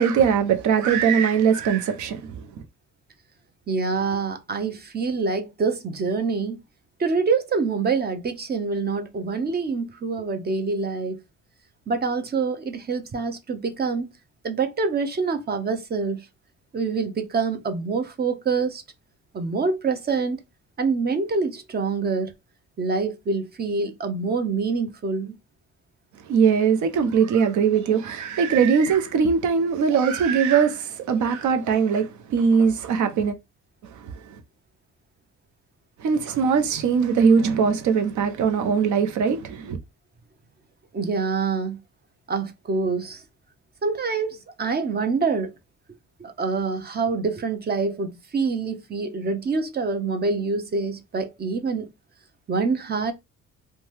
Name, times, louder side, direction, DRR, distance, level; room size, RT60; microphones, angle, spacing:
voice 1, 0.0-2.4 26.3-33.3 34.0-34.1 36.0-39.8, right 6 dB, 75° right, 0.7 m, -21 dB
voice 2, 3.7-6.6 7.0-11.2 11.9-14.1 14.4-16.3 16.7-18.8 19.3-20.4 20.8-22.3 22.8-25.4 40.9-41.8 42.3-43.2 43.8-45.5 46.2-51.9 52.5-53.1, right 4 dB, 35° right, 0.7 m, -26 dB
2.7 x 2.2 x 3.2 m
cardioid pair, 90°, 30 cm